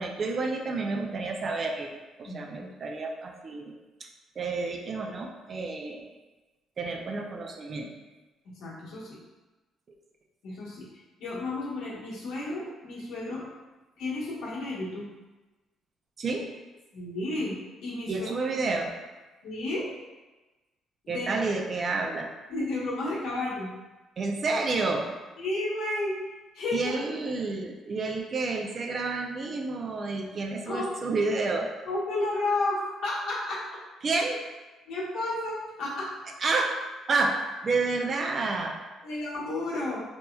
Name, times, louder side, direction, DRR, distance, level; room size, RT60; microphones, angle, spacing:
voice 1, 0.0-3.7 4.0-4.1 4.4-6.0 6.8-7.9 16.2-16.5 18.1-18.9 21.1-22.3 24.2-25.1 26.7-31.7 34.0-34.5 36.4-38.8, right 3 dB, 45° right, 2 dB, 0.5 m, -30 dB
voice 2, 2.2-2.7 8.6-9.2 10.4-10.8 11.2-13.5 14.0-15.0 16.9-18.3 19.4-19.9 21.0-21.3 22.5-23.7 25.4-26.1 26.5-27.0 30.7-30.9 31.9-33.6 34.9-36.2 39.0-40.0, left 2 dB, 75° left, -6 dB, 1.1 m, -32 dB
4.2 x 2.7 x 2.3 m, 1.2 s
cardioid pair, 90°, 0 cm